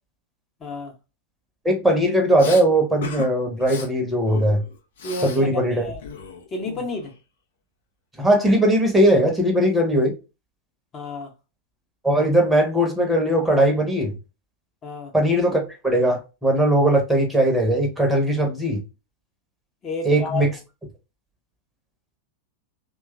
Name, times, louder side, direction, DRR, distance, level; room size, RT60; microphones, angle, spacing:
voice 1, 0.6-0.9 5.0-6.0 6.5-7.1 10.9-11.3 14.8-15.1 19.8-20.5, left 3 dB, 25° left, 0.8 m, -31 dB
voice 2, 1.6-4.6 5.2-5.8 8.2-10.1 12.0-14.1 15.1-18.8 20.0-20.5, right 1 dB, 5° right, 0.9 m, -19 dB
Respiratory sounds, 2.4-2.6 3.0-3.3 3.6-3.9 4.3-5.4 5.7-7.1, left 6 dB, 60° left, 0.6 m, -35 dB
2.9 x 2.3 x 2.3 m
figure-of-eight pair, 90°, 0 cm